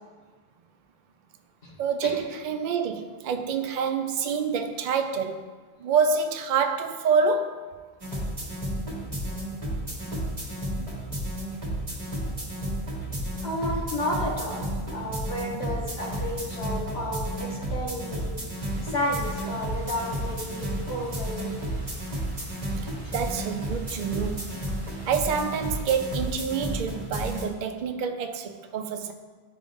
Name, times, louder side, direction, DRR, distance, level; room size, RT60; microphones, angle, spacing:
voice 1, 1.8-5.4 5.8-7.6 23.1-24.5 25.1-29.1, right 5 dB, 55° right, 6 dB, 0.5 m, -27 dB
sound 1, 8.0-27.5, right 1 dB, 35° right, 1.3 m, -32 dB
voice 2, 13.4-18.3 18.8-21.6, left 1 dB, 75° left, -4 dB, 1.6 m, -32 dB
sound 2, 18.5-25.8, equal, 15° right, 1.6 m, -48 dB
11.0 x 3.6 x 2.6 m, 1.4 s
omnidirectional pair, 1.1 m